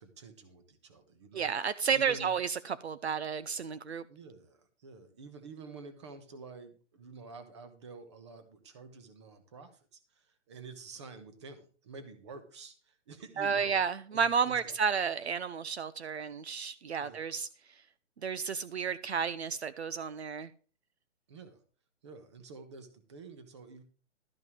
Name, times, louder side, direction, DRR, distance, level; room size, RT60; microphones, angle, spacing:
voice 1, 0.0-2.3 4.1-13.8 14.1-14.8 17.0-17.4 21.3-21.6 22.0-23.8, right 4 dB, 25° right, 1.3 m, -49 dB
voice 2, 1.3-4.0 13.4-17.8 18.2-20.5, right 6 dB, 60° right, 0.7 m, -32 dB
13.0 x 5.4 x 6.3 m
hypercardioid pair, 175°, 36 cm